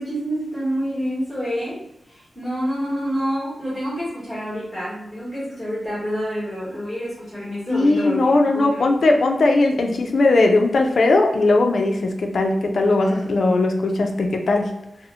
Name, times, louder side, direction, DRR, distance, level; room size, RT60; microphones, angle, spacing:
voice 1, 0.0-1.8 2.1-9.0 13.0-13.2, equal, 5° left, -10 dB, 1.1 m, -28 dB
voice 2, 7.7-14.7, left 2 dB, 60° left, 3 dB, 0.3 m, -18 dB
2.6 x 2.0 x 2.7 m, 0.87 s
wide cardioid pair, 160°, 0 cm